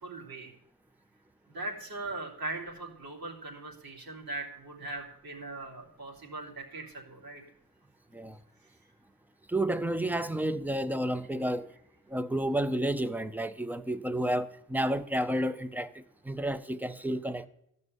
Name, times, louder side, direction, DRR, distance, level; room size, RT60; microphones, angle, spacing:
voice 1, 0.0-0.5 1.5-7.4, right 2 dB, 80° right, 3.4 m, -40 dB
voice 2, 9.5-11.7 12.1-17.5, right 1 dB, 5° right, 0.5 m, -31 dB
14.5 x 5.4 x 9.6 m
wide cardioid pair, 140°, 35 cm